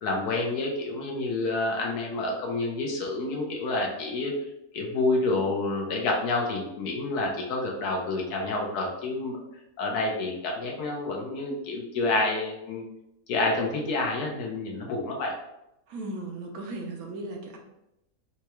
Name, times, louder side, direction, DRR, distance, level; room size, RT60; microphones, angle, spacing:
voice 1, 0.0-4.3 4.7-9.4 9.8-12.8 13.3-15.4, left 2 dB, 75° left, 0 dB, 1.3 m, -28 dB
voice 2, 15.9-17.6, right 2 dB, 70° right, 1 dB, 1.0 m, -36 dB
4.3 x 2.3 x 2.9 m, 0.86 s
omnidirectional pair, 1.7 m